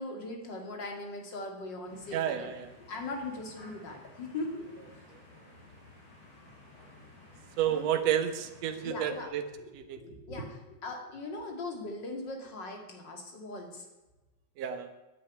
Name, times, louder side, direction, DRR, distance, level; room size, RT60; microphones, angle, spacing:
voice 1, 0.0-2.5 2.9-4.6 5.0-5.1 7.7-7.9 8.8-9.3 9.6-9.7 10.0-13.8, left 2 dB, 40° left, 2 dB, 2.7 m, -39 dB
sound 1, 1.9-9.3, left 2 dB, 70° left, 6.7 m, -55 dB
voice 2, 2.1-2.7 7.6-9.5 9.7-10.0 14.6-14.9, right 10 dB, 65° right, 7 dB, 2.1 m, -30 dB
10.0 x 9.9 x 9.3 m, 1.1 s
omnidirectional pair, 3.4 m